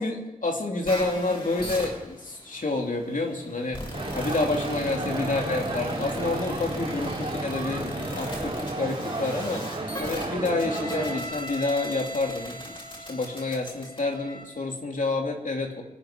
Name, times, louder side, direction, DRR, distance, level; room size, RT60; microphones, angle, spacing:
voice 1, 0.0-3.8 4.1-9.6 10.0-15.8, left 2 dB, 60° left, 1 dB, 2.9 m, -29 dB
sound 1, 0.8-14.4, equal, 35° left, 6.3 m, -37 dB
sound 2, 3.9-11.2, right 2 dB, 40° right, 4.0 m, -33 dB
27.0 x 10.0 x 5.2 m, 0.93 s
wide cardioid pair, 90°, 15 cm